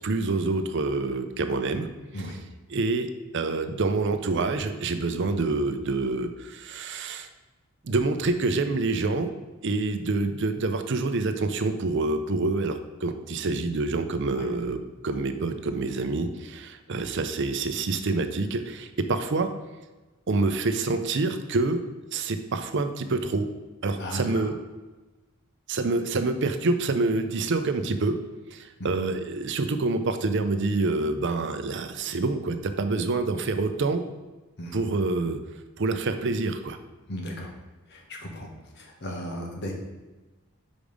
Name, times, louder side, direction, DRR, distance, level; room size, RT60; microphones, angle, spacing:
voice 1, 0.0-1.9 2.1-2.4 2.7-7.3 7.8-9.3 9.6-19.5 20.3-21.8 22.1-23.5 23.8-24.5 25.7-28.2 28.5-34.0 34.7-35.4 35.8-36.8, right 3 dB, 55° right, 9 dB, 0.6 m, -27 dB
voice 2, 37.1-37.5 37.9-38.5 39.0-39.8, equal, 50° left, 1 dB, 1.2 m, -35 dB
5.1 x 5.1 x 5.1 m, 1.2 s
head